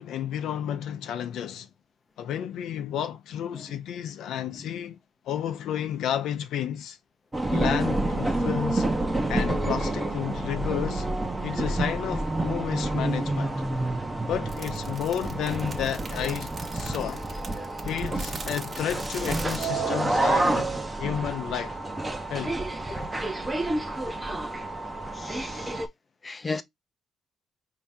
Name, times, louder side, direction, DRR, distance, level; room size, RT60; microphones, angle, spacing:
voice 1, 0.0-1.7 2.2-5.0 5.3-7.0 7.5-8.9 9.3-11.1 11.4-13.5 14.3-17.2 17.8-20.7 21.0-21.8 22.3-22.6, left 10 dB, 80° left, 0.5 m, -31 dB
sound 1, 7.3-25.9, right 2 dB, 20° right, 0.8 m, -29 dB
sound 2, 14.5-19.7, right 3 dB, 40° right, 1.1 m, -41 dB
voice 2, 25.1-25.8 26.2-26.6, left 3 dB, 25° left, 0.5 m, -35 dB
4.3 x 2.8 x 3.6 m
cardioid pair, 90°, 0 cm